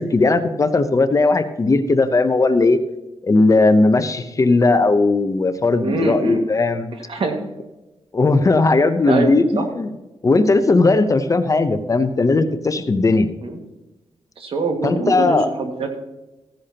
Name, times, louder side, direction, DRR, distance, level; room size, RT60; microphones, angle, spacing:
voice 1, 0.0-2.8 3.2-6.9 8.1-9.9 10.2-13.3 14.8-15.5, left 3 dB, 30° left, 10 dB, 0.7 m, -17 dB
voice 2, 5.8-6.4 7.1-7.4 9.1-9.7 13.4-13.6 14.4-16.0, right 3 dB, 65° right, 4 dB, 1.9 m, -24 dB
15.0 x 10.5 x 2.9 m, 1.0 s
wide cardioid pair, 115°, 10 cm